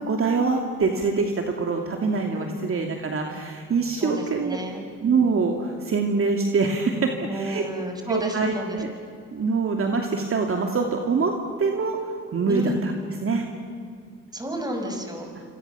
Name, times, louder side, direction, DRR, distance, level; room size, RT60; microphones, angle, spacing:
voice 1, 0.0-4.6 5.0-7.6 8.1-8.9 9.3-11.3 11.6-12.9 13.2-13.5 15.3-15.4, right 4 dB, 45° right, 3 dB, 2.7 m, -24 dB
voice 2, 4.0-4.8 7.2-8.8 12.5-12.8 14.3-15.3, equal, 15° right, 3 dB, 6.0 m, -31 dB
27.0 x 26.5 x 7.2 m, 2.2 s
cardioid pair, 90°, 30 cm